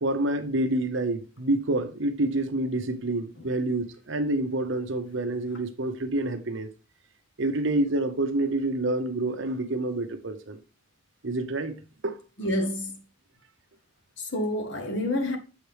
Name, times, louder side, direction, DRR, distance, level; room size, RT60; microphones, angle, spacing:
voice 1, 0.0-6.7 7.4-10.6 11.2-12.5, right 2 dB, 65° right, 0.8 m, -28 dB
voice 2, 12.4-13.0 14.2-15.4, left 1 dB, 55° left, 1.2 m, -28 dB
7.1 x 6.0 x 3.3 m
head